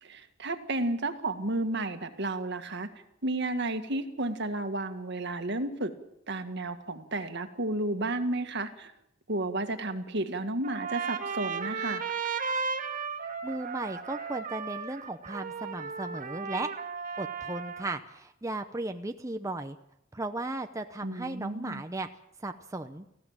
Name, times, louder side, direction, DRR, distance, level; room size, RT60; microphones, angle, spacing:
voice 1, 0.0-2.9 3.2-5.9 6.3-8.9 9.3-12.0 21.0-21.8, right 2 dB, 60° right, 8 dB, 1.8 m, -32 dB
Trumpet, 10.6-18.0, right 5 dB, 45° right, 1.8 m, -35 dB
voice 2, 13.4-16.7 17.2-19.8 20.1-22.1 22.4-23.0, right 2 dB, 15° right, 6 dB, 0.8 m, -36 dB
18.5 x 15.5 x 8.9 m, 0.80 s
head